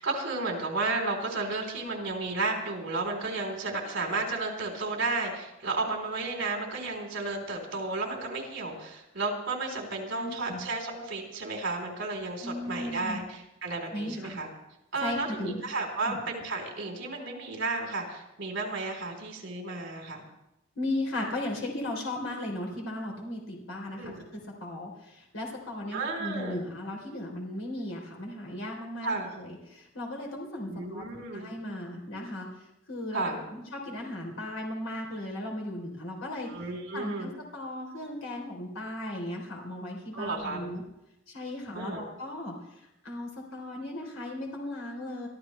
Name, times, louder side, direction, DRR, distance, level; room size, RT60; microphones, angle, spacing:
voice 1, 0.0-14.5 14.9-20.3 23.9-24.2 25.9-26.6 29.0-29.3 30.7-31.5 33.1-33.4 36.5-37.3 40.1-40.7 41.7-42.0, right 3 dB, 60° right, 1 dB, 3.9 m, -33 dB
voice 2, 10.2-10.6 12.4-13.2 13.9-14.4 15.0-15.6 16.0-16.2 20.8-31.0 31.3-32.5 32.9-36.5 36.9-40.8 41.3-42.5 43.0-45.3, left 1 dB, 85° left, 0 dB, 3.5 m, -36 dB
24.0 x 13.5 x 3.3 m, 0.87 s
head